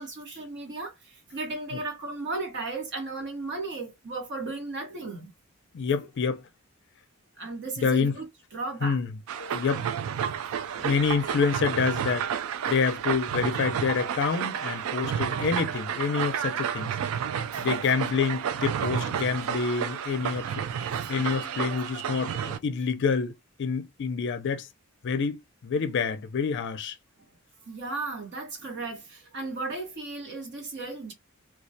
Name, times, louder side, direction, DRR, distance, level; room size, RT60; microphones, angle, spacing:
voice 1, 0.0-5.3 5.9-6.0 7.4-8.3 8.5-9.0 17.5-18.2 27.7-31.1, right 3 dB, 55° right, 0.9 m, -35 dB
voice 2, 5.7-6.4 7.8-8.2 8.8-9.1 9.4-9.8 10.8-12.3 12.7-16.9 17.6-20.5 21.1-24.7 25.0-25.4 25.6-27.0, left 5 dB, 55° left, 0.4 m, -27 dB
sound 1, 9.3-22.6, right 8 dB, 75° right, 0.3 m, -31 dB
2.2 x 2.1 x 2.6 m
head